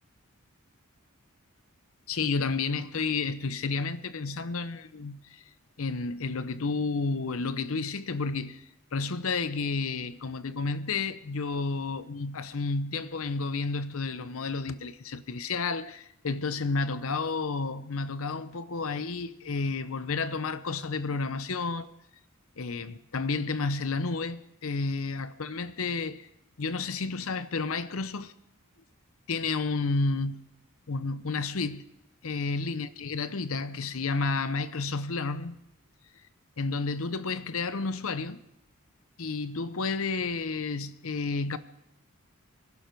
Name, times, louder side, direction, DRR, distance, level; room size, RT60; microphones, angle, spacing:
voice 1, 2.1-5.4 5.8-8.6 8.9-21.9 22.6-26.3 26.6-28.3 29.3-30.4 30.9-31.8 32.2-35.5 36.6-38.4 39.2-41.6, left 4 dB, 70° left, 0.7 m, -31 dB
25.0 x 11.5 x 4.6 m
head